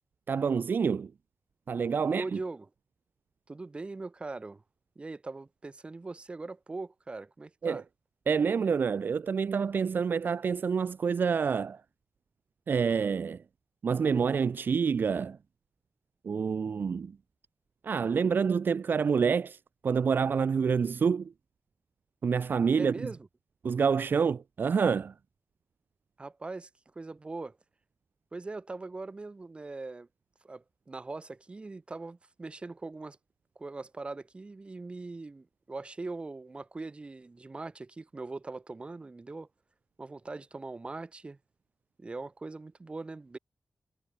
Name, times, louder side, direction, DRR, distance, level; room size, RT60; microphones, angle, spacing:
voice 1, 0.3-1.1 1.7-2.4 7.6-7.8 8.3-11.8 12.7-13.4 13.8-15.4 16.2-17.2 17.8-21.3 22.2-22.9 23.6-25.1, right 6 dB, 60° right, 0.7 m, -27 dB
voice 2, 2.0-2.7 3.5-4.6 5.0-7.8 22.7-23.3 26.2-27.6 28.3-30.1 30.4-33.2 33.6-39.5 40.0-41.4 42.0-43.4, right 3 dB, 30° right, 2.0 m, -41 dB
wide cardioid pair, 135°, 4 cm